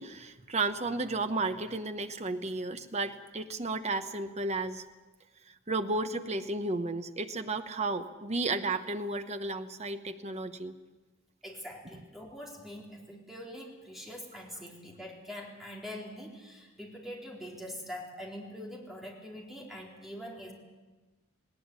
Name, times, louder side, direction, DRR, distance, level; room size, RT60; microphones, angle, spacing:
voice 1, 0.0-4.8 5.4-10.8, right 3 dB, 35° right, 9 dB, 1.1 m, -33 dB
voice 2, 11.4-20.5, equal, ahead, -2 dB, 4.0 m, -44 dB
19.0 x 18.0 x 9.7 m, 1.2 s
head